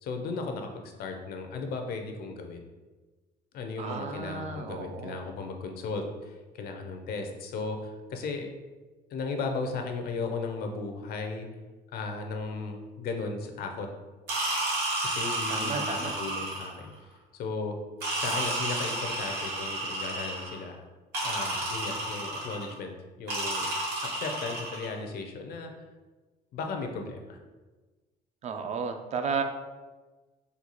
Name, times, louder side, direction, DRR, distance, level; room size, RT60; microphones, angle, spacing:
voice 1, 0.0-2.6 3.5-8.5 9.1-11.5 11.9-13.9 15.0-16.9 17.3-17.8 18.2-20.8 21.2-22.9 23.2-23.7 24.0-25.7 26.5-27.4, left 4 dB, 65° left, 4 dB, 0.5 m, -36 dB
voice 2, 3.8-5.2 15.5-16.1 28.4-29.4, right 5 dB, 40° right, 6 dB, 0.4 m, -33 dB
sound 1, 14.3-16.8 18.0-20.6 21.1-22.7 23.3-24.9, right 1 dB, 80° right, 1.3 m, -31 dB
3.9 x 2.3 x 2.9 m, 1.2 s
cardioid pair, 110°, 17 cm